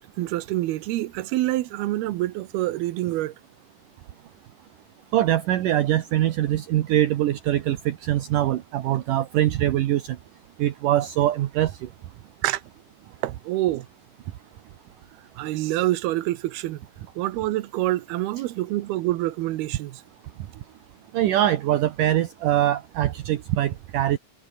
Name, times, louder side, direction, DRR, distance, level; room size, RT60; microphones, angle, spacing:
voice 1, 0.2-3.3 12.4-12.6 13.2-13.9 15.4-16.8 17.2-20.0, right 16 dB, 85° right, 2.9 m, -26 dB
voice 2, 5.1-10.0 10.6-11.7 21.1-24.2, right 13 dB, 70° right, 2.5 m, -23 dB
omnidirectional pair, 4.4 m